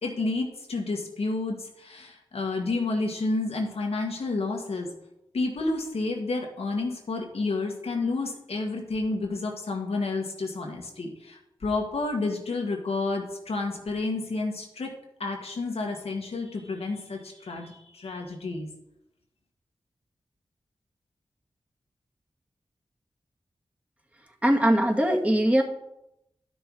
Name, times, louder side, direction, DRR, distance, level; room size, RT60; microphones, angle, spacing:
voice 1, 0.0-4.9 5.3-14.9 15.2-18.7, left 3 dB, 80° left, 1 dB, 1.9 m, -30 dB
voice 2, 24.4-25.6, right 1 dB, 15° right, 0 dB, 2.2 m, -21 dB
11.5 x 6.3 x 4.8 m, 0.84 s
cardioid pair, 40°, 10 cm